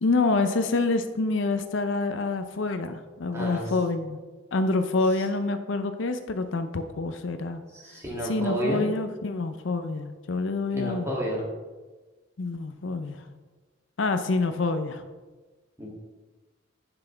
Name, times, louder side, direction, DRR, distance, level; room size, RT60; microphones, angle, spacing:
voice 1, 0.0-4.2 4.5-7.6 8.2-11.1 12.4-13.2 14.0-15.0, left 3 dB, 75° left, 9 dB, 0.6 m, -27 dB
voice 2, 3.3-3.6 7.7-8.8 10.7-11.4 15.8-15.9, right 1 dB, 15° right, -5 dB, 2.4 m, -30 dB
9.6 x 5.9 x 3.4 m, 1.3 s
head